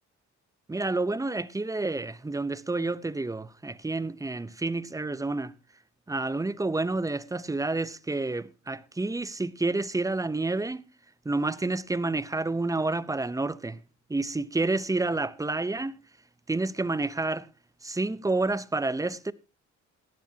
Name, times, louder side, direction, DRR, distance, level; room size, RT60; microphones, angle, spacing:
voice 1, 0.7-5.5 6.1-10.8 11.2-13.8 14.1-15.9 16.5-17.5 17.8-19.3, right 2 dB, 10° right, 0.7 m, -29 dB
17.0 x 12.0 x 2.8 m
cardioid pair, 90°, 30 cm